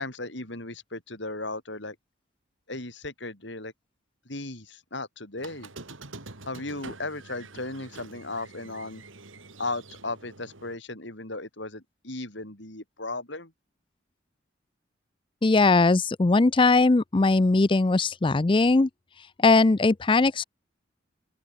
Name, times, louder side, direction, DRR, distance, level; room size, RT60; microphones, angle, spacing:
voice 1, 0.0-2.0 2.7-3.7 4.3-5.7 6.5-9.0 9.6-13.5, left 2 dB, 65° left, 5.3 m, -36 dB
Squeak, 5.4-10.7, right 3 dB, 85° right, 3.2 m, -46 dB
voice 2, 15.4-18.9 19.2-20.4, left 3 dB, 25° left, 0.5 m, -20 dB
open air
head